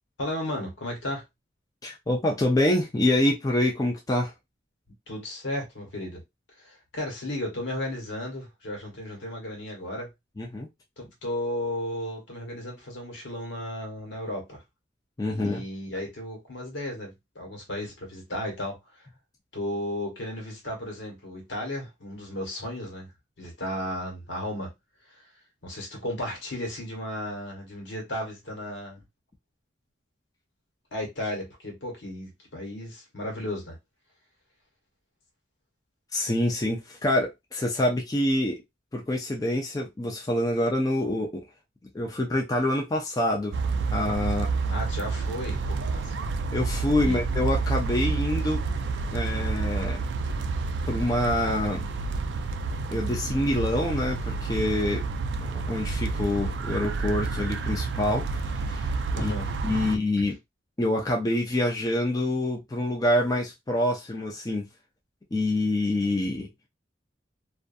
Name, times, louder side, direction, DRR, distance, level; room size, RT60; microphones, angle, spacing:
voice 1, 0.2-1.2 5.1-6.2 6.6-10.1 11.0-14.6 15.3-18.8 19.5-23.1 23.4-24.7 25.6-29.0 30.9-33.8 44.7-46.2 47.0-47.2 59.1-59.5 59.8-59.9, left 1 dB, 75° left, 1.2 m, -34 dB
voice 2, 1.8-4.3 10.4-10.7 15.2-15.6 36.1-38.6 38.9-41.4 41.9-43.5 43.9-44.5 46.5-48.6 49.1-50.0 50.9-51.9 52.9-55.0 55.4-58.9 59.2-59.3 59.6-60.3 60.8-64.7 65.3-66.5, left 1 dB, 20° left, 0.5 m, -26 dB
sound 1, 43.5-60.0, right 4 dB, 70° right, 0.3 m, -29 dB
2.6 x 2.3 x 2.5 m
head